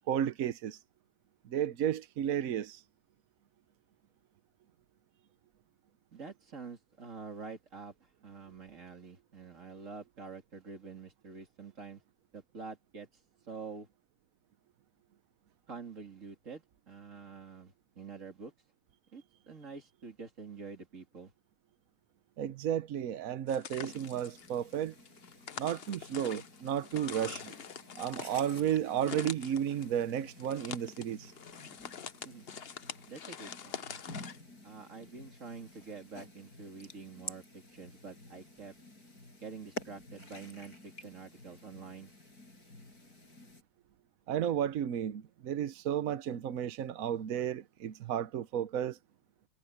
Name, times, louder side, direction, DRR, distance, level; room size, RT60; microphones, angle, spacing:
voice 1, 0.1-0.8 1.5-2.8 22.4-24.9 25.6-27.5 28.0-31.3 44.3-49.0, right 9 dB, 65° right, 0.9 m, -33 dB
voice 2, 6.1-12.0 12.3-13.1 13.5-13.9 15.7-18.5 19.1-21.3 32.2-32.4 33.1-33.9 34.6-38.7 39.4-42.1, right 5 dB, 35° right, 3.1 m, -47 dB
sound 1, 23.5-34.4, left 7 dB, 80° left, 0.5 m, -45 dB
sound 2, 23.8-43.6, left 1 dB, 45° left, 6.5 m, -51 dB
omnidirectional pair, 2.3 m